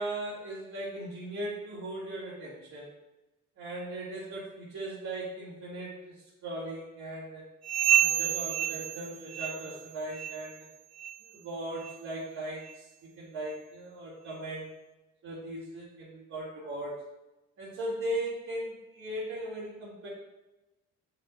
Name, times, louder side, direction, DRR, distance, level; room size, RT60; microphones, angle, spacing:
voice 1, 0.0-2.9 3.6-7.5 8.0-10.7 11.3-14.8 15.2-17.0 17.6-20.1, right 1 dB, 85° right, -10 dB, 2.1 m, -38 dB
sound 1, 7.6-9.9 10.1-10.5 11.0-11.2 11.8-12.0 12.7-12.8 13.5-13.6, right 10 dB, 55° right, 0.5 m, -29 dB
7.4 x 6.3 x 2.5 m, 1.0 s
cardioid pair, 90°, 30 cm